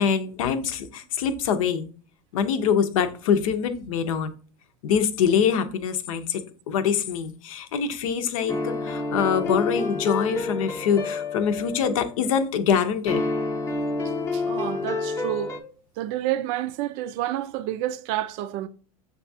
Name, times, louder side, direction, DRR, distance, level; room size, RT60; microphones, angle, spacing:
voice 1, 0.0-1.9 2.3-4.3 4.8-6.4 6.7-13.2, left 7 dB, 75° left, 0.7 m, -24 dB
sound 1, 8.5-12.2 13.1-15.6, left 3 dB, 15° left, 0.7 m, -28 dB
voice 2, 14.3-15.5 16.0-18.7, right 13 dB, 55° right, 0.4 m, -29 dB
6.7 x 2.4 x 2.6 m
hypercardioid pair, 105°, 18 cm